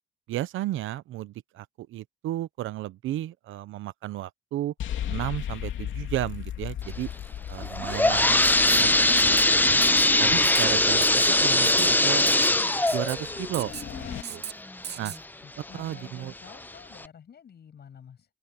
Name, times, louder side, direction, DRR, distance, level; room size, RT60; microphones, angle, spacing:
voice 1, 0.3-4.7 5.1-7.1 7.5-9.8 10.2-12.3 12.9-13.7 14.3-14.4 15.0-15.1 15.7-16.3, right 14 dB, 80° right, 0.9 m, -33 dB
sound 1, 4.8-14.2, left 10 dB, 75° left, 2.8 m, -37 dB
sound 2, 7.6-15.2 15.7-15.8 16.5-16.6 17.0-17.1, left 2 dB, 10° left, 0.9 m, -22 dB
Writing, 8.4-8.9 9.2-9.4 9.8-10.1 10.4-10.7 11.0-11.3 11.6-11.9 12.3-12.5 12.9-13.2 13.5-13.9 14.2-14.5 14.8-15.2, right 9 dB, 60° right, 1.8 m, -36 dB
voice 2, 15.4-18.3, left 8 dB, 55° left, 7.7 m, -49 dB
cardioid pair, 90°, 20 cm